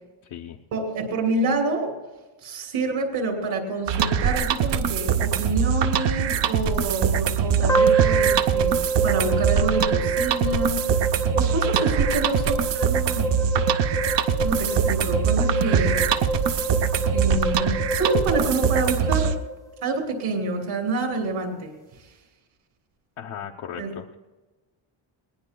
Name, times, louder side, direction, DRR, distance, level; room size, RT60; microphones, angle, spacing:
voice 1, 0.7-2.0 2.4-11.0 11.3-13.3 14.4-16.0 17.1-19.4 19.8-21.7 23.8-24.0, right 2 dB, 75° right, 2 dB, 3.4 m, -27 dB
sound 1, 3.9-19.4, right 7 dB, 55° right, 0.8 m, -23 dB
sound 2, 7.7-19.9, right 4 dB, 5° left, 0.5 m, -27 dB
voice 2, 12.3-12.7 23.2-24.1, left 8 dB, 65° left, 1 dB, 0.9 m, -37 dB
20.5 x 19.5 x 2.3 m, 1.2 s
wide cardioid pair, 175°, 50 cm